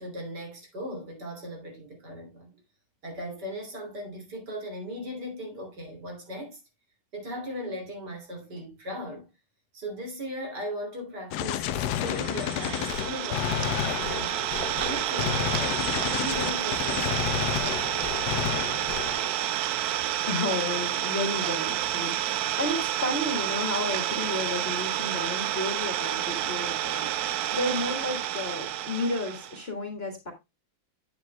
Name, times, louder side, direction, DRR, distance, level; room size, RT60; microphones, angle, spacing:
voice 1, 0.0-2.6 3.0-6.6 7.1-9.3 9.7-14.4 14.8-15.8 16.2-17.8, equal, 50° right, 3.6 m, -38 dB
Gunshot gunfire, 11.3-19.3, left 11 dB, 70° left, 1.0 m, -31 dB
Idling, 11.9-29.6, right 12 dB, 85° right, 0.8 m, -29 dB
voice 2, 20.3-27.1 27.5-30.3, left 2 dB, 30° left, 1.6 m, -32 dB
10.0 x 8.2 x 2.2 m
omnidirectional pair, 2.3 m